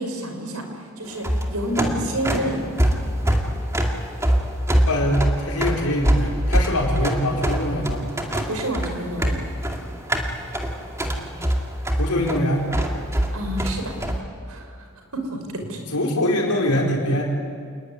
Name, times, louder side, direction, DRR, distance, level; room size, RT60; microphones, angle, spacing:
voice 1, 0.0-2.6 8.3-9.7 13.3-14.0 14.5-14.9 15.1-15.8, right 1 dB, 80° right, 5 dB, 5.3 m, -29 dB
sound 1, 1.1-14.2, equal, 15° right, 2.5 m, -23 dB
voice 2, 4.8-8.1 11.2-11.3 12.0-12.6 15.9-17.2, left 1 dB, 85° left, -2 dB, 4.3 m, -23 dB
28.0 x 20.5 x 9.8 m, 2.2 s
head